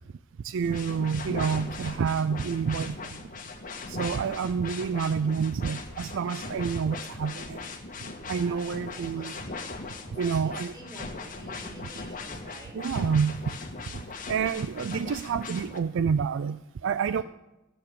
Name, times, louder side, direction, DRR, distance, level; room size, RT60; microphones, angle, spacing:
voice 1, 0.4-3.0 3.9-7.6 8.3-9.4 10.2-10.7 12.7-13.4 14.3-17.2, right 6 dB, 60° right, 14 dB, 0.4 m, -28 dB
sound 1, 0.6-15.8, left 3 dB, 40° left, 1.5 m, -39 dB
voice 2, 4.0-4.4 8.3-9.4 10.1-12.8 17.1-17.2, right 1 dB, 20° right, -3 dB, 5.2 m, -48 dB
17.0 x 7.0 x 6.9 m, 1.0 s
head